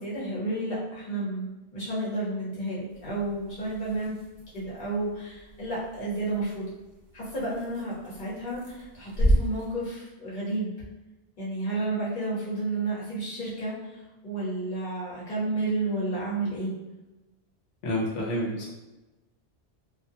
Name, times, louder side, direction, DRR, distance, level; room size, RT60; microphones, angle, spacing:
voice 1, 0.0-4.1 4.5-6.7 7.1-8.6 8.9-10.7 11.4-13.7 14.2-16.7, right 2 dB, 45° left, -7 dB, 1.1 m, -31 dB
sound 1, 2.9-9.8, equal, 55° right, 0.7 m, -33 dB
voice 2, 17.8-18.7, left 1 dB, 85° left, -4 dB, 1.0 m, -29 dB
2.4 x 2.2 x 2.6 m, 1.0 s
omnidirectional pair, 1.2 m